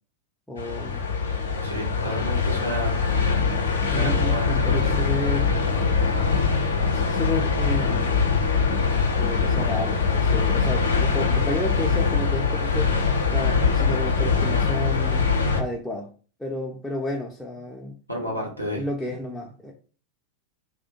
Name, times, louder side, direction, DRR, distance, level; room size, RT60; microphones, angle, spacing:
voice 1, 0.5-1.0 3.9-5.5 6.9-8.2 9.2-12.9 13.3-15.3 15.6-16.1 16.4-18.3 18.6-19.7, left 1 dB, 5° left, -1 dB, 0.4 m, -31 dB
sound 1, 0.6-15.6, left 5 dB, 70° left, 0.4 m, -23 dB
voice 2, 1.6-3.0 3.9-4.9 18.1-18.8, equal, 90° right, -2 dB, 0.8 m, -31 dB
2.3 x 2.1 x 2.8 m, 0.38 s
figure-of-eight pair, 90°, 0 cm